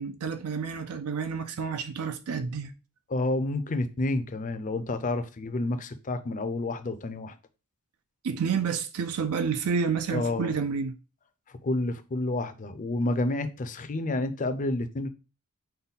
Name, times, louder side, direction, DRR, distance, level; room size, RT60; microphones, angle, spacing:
voice 1, 0.0-2.7 8.2-11.0, right 6 dB, 80° right, 0.5 m, -29 dB
voice 2, 3.1-7.3 10.1-10.5 11.6-15.1, left 2 dB, 35° left, 0.5 m, -29 dB
5.4 x 2.2 x 4.0 m
head